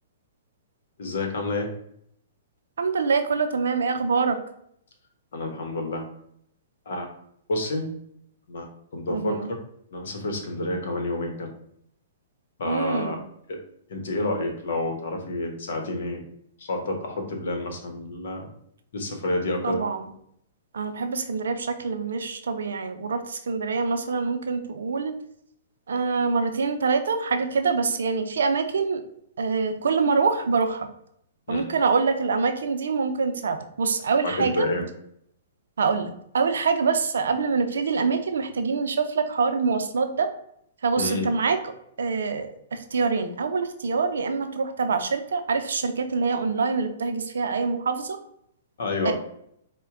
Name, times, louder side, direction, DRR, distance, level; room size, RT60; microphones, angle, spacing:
voice 1, 1.0-1.7 5.3-6.0 6.9-7.1 7.5-7.9 8.5-8.7 8.9-9.4 9.9-11.5 12.6-13.2 13.5-13.6 13.9-16.2 16.6-18.5 18.9-19.8 31.5-31.7 34.2-34.8 41.0-41.3 48.8-49.1, left 2 dB, 70° left, 3 dB, 1.0 m, -29 dB
voice 2, 2.8-4.4 9.1-9.5 12.6-13.2 19.6-20.1 20.7-25.1 25.9-29.0 29.4-30.9 31.5-34.7 35.8-40.3 40.8-41.6 42.0-48.2 49.0-49.1, right 4 dB, 75° right, 7 dB, 0.5 m, -25 dB
4.3 x 2.2 x 3.7 m, 0.70 s
hypercardioid pair, 120°, 0 cm